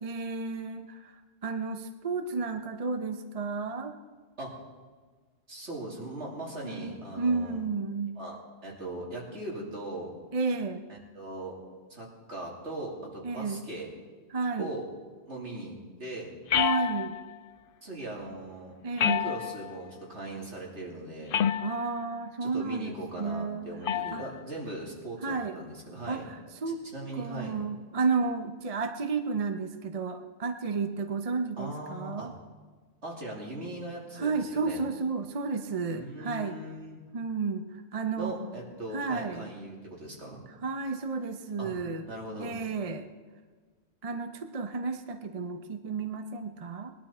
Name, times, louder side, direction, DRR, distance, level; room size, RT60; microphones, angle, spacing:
voice 1, 0.0-4.0 6.6-8.2 10.3-10.9 13.2-13.6 14.3-14.7 16.5-17.2 18.8-19.3 21.6-23.7 24.1-24.2 25.2-25.6 26.1-26.8 27.1-32.3 34.2-36.6 37.1-38.4 38.9-39.5 40.5-42.1 42.4-43.1 44.0-46.9, right 4 dB, 35° right, 7 dB, 0.7 m, -32 dB
voice 2, 5.5-7.6 8.2-10.1 11.1-11.5 11.9-13.9 14.6-14.9 15.3-16.3 17.8-18.7 19.0-21.4 22.4-26.3 26.7-27.5 31.6-32.3 33.0-34.8 35.9-37.0 38.2-40.4 41.6-41.7 42.1-42.6, right 1 dB, 65° right, -3 dB, 3.2 m, -39 dB
sound 1, 16.5-17.3 19.0-19.8 21.3-22.0 23.9-24.3, left 9 dB, 60° left, 0.6 m, -28 dB
20.5 x 11.5 x 4.3 m, 1.5 s
omnidirectional pair, 1.2 m